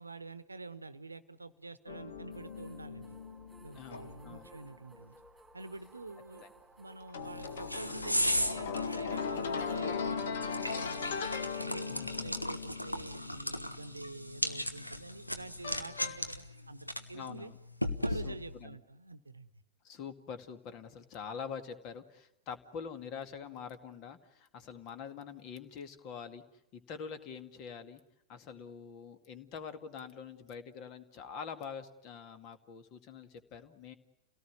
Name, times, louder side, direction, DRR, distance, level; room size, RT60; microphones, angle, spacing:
voice 1, 0.0-3.2 3.6-5.1 5.5-6.4 6.8-11.2 11.6-17.5 18.0-19.5, right 3 dB, 80° right, 15 dB, 1.0 m, -47 dB
sound 1, 1.9-4.5 7.1-15.0 15.6-16.2, left 5 dB, 60° left, 1.7 m, -39 dB
sound 2, 2.3-9.8, right 3 dB, 10° right, 2.8 m, -58 dB
voice 2, 3.7-4.5 6.4-6.5 11.9-12.3 17.1-17.6 18.1-18.8 19.8-26.4 26.7-28.0 28.3-33.9, left 6 dB, 40° left, 9 dB, 2.1 m, -45 dB
sound 3, 7.2-18.6, left 1 dB, 90° left, 1.3 m, -37 dB
28.5 x 18.0 x 9.6 m, 0.83 s
figure-of-eight pair, 90°, 0 cm